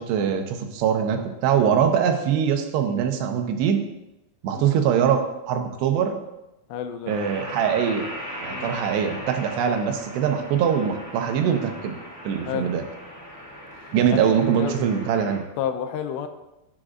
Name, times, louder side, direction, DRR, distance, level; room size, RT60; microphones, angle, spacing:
voice 1, 0.0-3.8 4.4-5.2 5.5-6.2 7.1-8.1 8.4-11.9 12.3-12.8 13.9-15.4, right 8 dB, 80° right, 5 dB, 3.0 m, -22 dB
voice 2, 6.7-7.1 8.5-8.8 12.5-12.7 14.1-14.3 14.6-14.7 15.6-16.3, left 9 dB, 90° left, 7 dB, 2.9 m, -30 dB
sound 1, 7.1-15.4, equal, 10° left, 2.5 m, -38 dB
16.0 x 7.5 x 2.5 m, 0.94 s
omnidirectional pair, 4.9 m